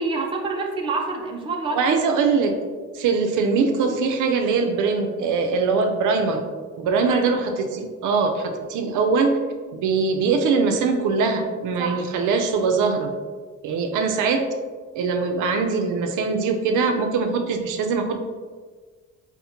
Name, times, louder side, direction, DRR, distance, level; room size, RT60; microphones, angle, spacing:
voice 1, 0.0-2.1 6.9-7.3 11.8-12.0, right 3 dB, 20° right, 1 dB, 0.4 m, -27 dB
voice 2, 1.7-2.6 2.9-6.4 6.8-9.3 9.7-13.1 13.6-14.5 15.0-18.2, right 4 dB, 85° right, 5 dB, 0.5 m, -22 dB
5.5 x 2.1 x 2.8 m, 1.5 s
cardioid pair, 165°, 30 cm